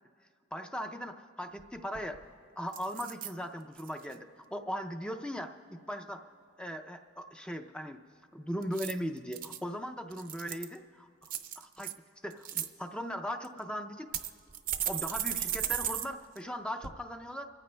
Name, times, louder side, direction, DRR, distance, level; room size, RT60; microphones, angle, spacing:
voice 1, 0.5-2.2 2.6-6.3 6.6-8.0 8.3-11.1 11.6-11.9 12.2-14.1 14.9-17.5, equal, 5° left, 6 dB, 0.4 m, -38 dB
sound 1, 1.6-1.7 1.9-2.3 2.7-3.3 3.8-4.1 8.6-9.6 10.1-10.8 11.3-11.9 12.3-12.7 13.4-13.5 14.1-16.1 16.4-16.5 16.8-16.9, right 10 dB, 45° right, 0.5 m, -35 dB
29.0 x 14.5 x 2.2 m, 2.1 s
head